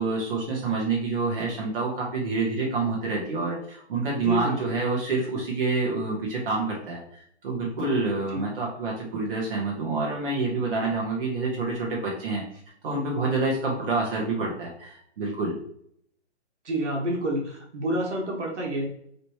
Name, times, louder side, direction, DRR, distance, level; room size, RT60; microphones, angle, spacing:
voice 1, 0.0-12.4 12.8-15.5, right 3 dB, 50° right, -3 dB, 1.3 m, -27 dB
voice 2, 4.2-4.7 8.3-8.4 16.7-18.9, right 1 dB, 75° right, 0 dB, 1.8 m, -28 dB
4.9 x 3.3 x 3.1 m, 0.69 s
hypercardioid pair, 150°, 35 cm